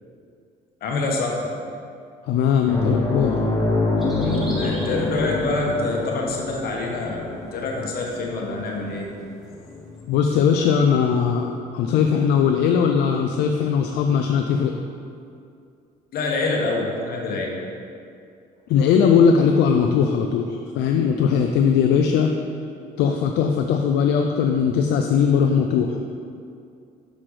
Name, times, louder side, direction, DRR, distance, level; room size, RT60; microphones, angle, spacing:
voice 1, 0.8-1.5 4.2-9.1 16.1-17.5, left 3 dB, 65° left, -1 dB, 1.1 m, -26 dB
voice 2, 2.3-3.4 10.1-14.7 18.7-22.3 23.0-26.0, left 7 dB, 80° left, 3 dB, 0.4 m, -19 dB
sound 1, 2.7-11.6 12.0-12.1 14.2-14.3, left 2 dB, 20° left, 0.8 m, -27 dB
sound 2, 4.0-5.7 6.2-6.7 7.1-7.2 8.0-8.1 8.4-8.5 9.4-9.5, equal, ahead, 1.3 m, -39 dB
6.1 x 5.8 x 3.2 m, 2.4 s
cardioid pair, 110°, 17 cm